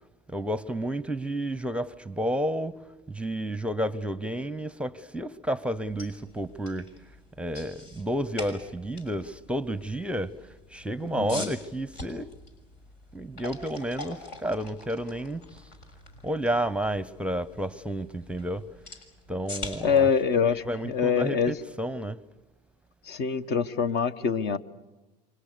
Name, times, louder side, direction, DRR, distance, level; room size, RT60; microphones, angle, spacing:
voice 1, 0.3-2.8 3.1-6.9 7.4-12.3 13.1-15.6 16.2-18.7 19.3-20.1 20.4-22.2, right 1 dB, 5° right, 0.8 m, -31 dB
sound 1, 5.8-21.7, left 2 dB, 75° left, 6.3 m, -45 dB
voice 2, 11.2-11.5 19.8-21.5 23.1-24.6, left 6 dB, 55° left, 1.3 m, -25 dB
29.0 x 25.0 x 6.8 m
hypercardioid pair, 80°, 21 cm